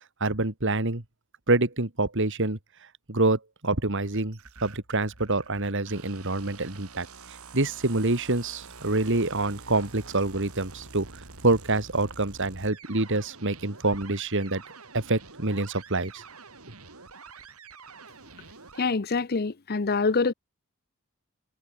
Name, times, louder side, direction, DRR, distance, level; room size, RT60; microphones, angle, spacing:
voice 1, 0.2-1.0 1.5-2.6 3.1-14.6 14.9-16.2, right 2 dB, 55° right, 2.4 m, -26 dB
sound 1, 4.0-18.8, right 4 dB, 75° right, 4.6 m, -47 dB
voice 2, 18.8-20.3, left 4 dB, 45° left, 0.7 m, -25 dB
head